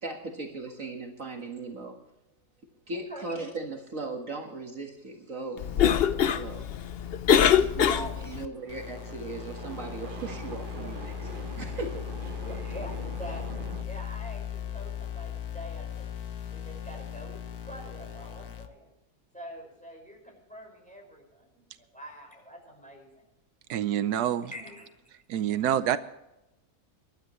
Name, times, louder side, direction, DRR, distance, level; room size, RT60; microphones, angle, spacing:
voice 1, 0.0-2.0 2.9-6.0 6.3-6.7 7.5-12.0, right 3 dB, 55° right, 2 dB, 2.1 m, -38 dB
Cough, 5.6-8.5, left 9 dB, 55° left, 0.7 m, -23 dB
voice 2, 7.3-8.3 12.4-16.0 16.5-18.9 19.3-23.3 24.2-24.9, equal, 5° left, 0 dB, 5.4 m, -45 dB
sound 1, 8.4-13.8, right 4 dB, 40° right, 1.0 m, -43 dB
sound 2, 8.7-18.7, left 10 dB, 75° left, 1.6 m, -38 dB
voice 3, 23.7-24.5 25.3-26.0, right 10 dB, 85° right, 12 dB, 1.2 m, -26 dB
24.0 x 12.0 x 3.1 m, 0.93 s
omnidirectional pair, 1.6 m